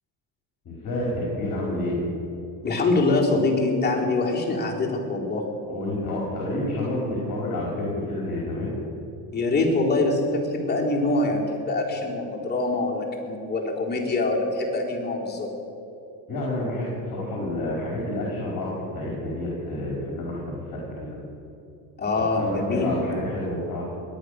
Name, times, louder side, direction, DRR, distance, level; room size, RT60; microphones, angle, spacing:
voice 1, 0.6-2.1 5.7-8.7 16.3-21.2 22.3-23.9, left 1 dB, 40° left, -3 dB, 4.6 m, -29 dB
voice 2, 2.6-5.4 9.3-15.5 22.0-22.9, left 2 dB, 20° left, -3 dB, 4.2 m, -24 dB
22.5 x 9.0 x 6.6 m, 2.8 s
supercardioid pair, 95°, 47 cm